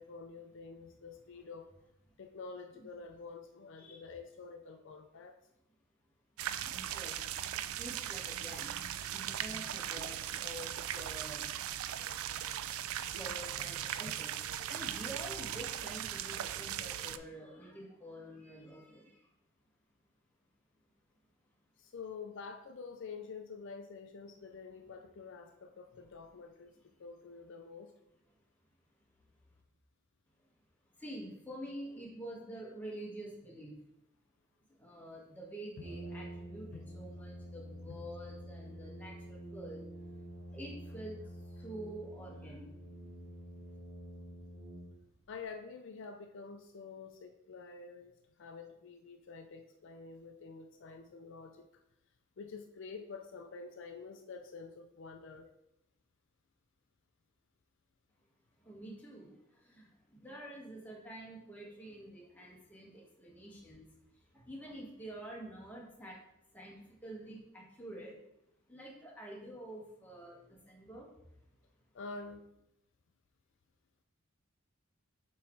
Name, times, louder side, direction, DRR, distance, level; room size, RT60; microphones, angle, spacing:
voice 1, 0.0-1.7 2.2-5.4 21.8-27.9 35.8-35.9 36.7-36.8 45.3-51.7 52.4-55.5 71.9-72.5, left 4 dB, 60° left, 5 dB, 0.4 m, -48 dB
sound 1, 6.4-17.2, right 11 dB, 90° right, 0.3 m, -39 dB
voice 2, 6.6-7.2 7.6-8.7 9.1-11.5 13.1-14.3 14.7-19.3 31.0-33.8 34.8-39.8 40.5-41.2 41.5-42.7 58.6-63.9 64.3-66.2 66.5-68.2 68.7-71.1, right 1 dB, 10° left, -4 dB, 1.5 m, -47 dB
Brass instrument, 35.8-45.3, equal, 35° right, 1.8 m, -48 dB
7.1 x 3.1 x 4.5 m, 0.83 s
head